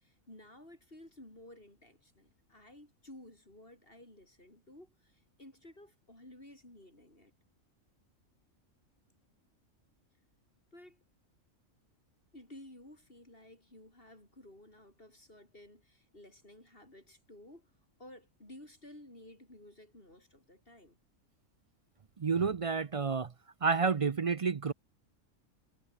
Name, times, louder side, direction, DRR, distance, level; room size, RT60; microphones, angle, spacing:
voice 1, 0.0-7.3 10.7-11.0 12.3-17.7 18.0-21.0, left 1 dB, 45° left, 7.6 m, -54 dB
voice 2, 22.2-23.3 23.6-24.7, right 5 dB, 50° right, 0.4 m, -30 dB
omnidirectional pair, 1.4 m